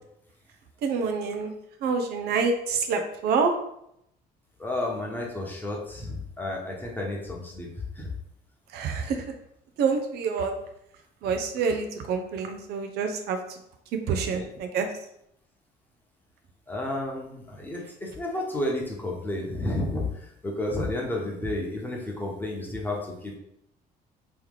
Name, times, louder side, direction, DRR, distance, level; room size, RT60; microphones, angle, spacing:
voice 1, 0.8-1.5 1.8-3.5 8.7-9.2 9.8-10.5 11.2-13.6 14.1-14.9, right 5 dB, 75° right, 5 dB, 0.6 m, -27 dB
voice 2, 4.6-7.7 7.9-8.1 14.1-14.4 16.7-23.4, left 1 dB, 10° left, -2 dB, 1.0 m, -31 dB
3.1 x 3.0 x 3.8 m, 0.76 s
cardioid pair, 110°, 17 cm